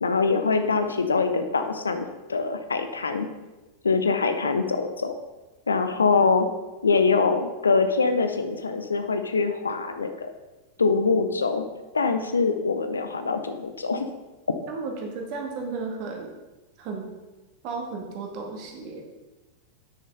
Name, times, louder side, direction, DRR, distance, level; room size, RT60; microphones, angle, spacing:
voice 1, 0.0-3.3 3.8-5.1 5.7-6.5 6.8-10.3 10.8-11.6 11.9-14.1, left 4 dB, 75° left, 8 dB, 0.8 m, -24 dB
voice 2, 14.7-16.3 16.8-17.1 17.6-19.0, right 4 dB, 45° right, 1 dB, 2.1 m, -34 dB
8.8 x 6.4 x 5.5 m, 1.1 s
figure-of-eight pair, 90°, 0 cm